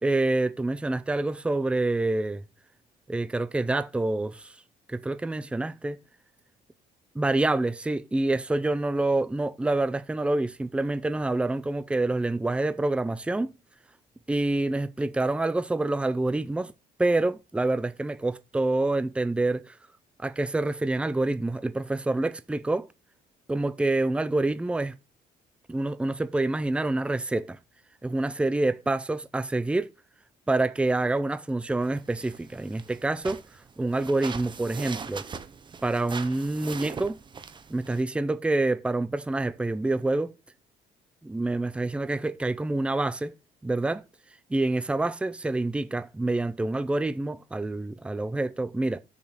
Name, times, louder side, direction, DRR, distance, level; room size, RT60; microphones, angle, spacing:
voice 1, 0.0-2.4 3.1-4.5 4.9-6.0 7.2-13.5 14.3-16.7 17.0-19.8 20.2-22.9 23.5-25.0 25.7-27.6 28.0-29.9 30.5-33.4 33.8-35.2 35.8-37.2 37.7-40.3 41.2-43.3 43.6-44.0 44.5-49.0, right 2 dB, 5° right, 0.6 m, -27 dB
sound 1, 31.8-38.0, right 5 dB, 30° right, 0.9 m, -41 dB
6.8 x 6.0 x 6.4 m
cardioid pair, 130°, 17 cm